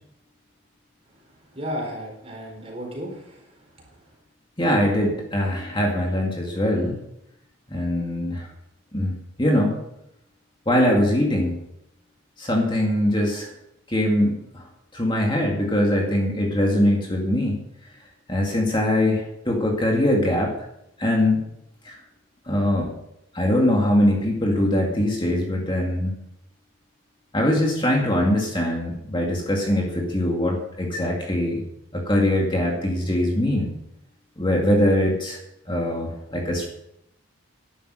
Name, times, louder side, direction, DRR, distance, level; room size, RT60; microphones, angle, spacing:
voice 1, 1.5-3.6, equal, 30° right, 0 dB, 4.2 m, -33 dB
voice 2, 4.6-7.0 7.7-8.5 8.9-9.8 10.7-11.6 12.4-13.5 13.9-14.6 14.9-17.6 18.3-20.5 21.0-21.4 21.8-21.9 22.5-22.9 23.3-26.2 27.3-31.6 31.9-33.7 34.4-35.4 35.7-36.6, left 1 dB, 25° left, -1 dB, 2.2 m, -22 dB
11.5 x 11.0 x 6.4 m, 0.81 s
head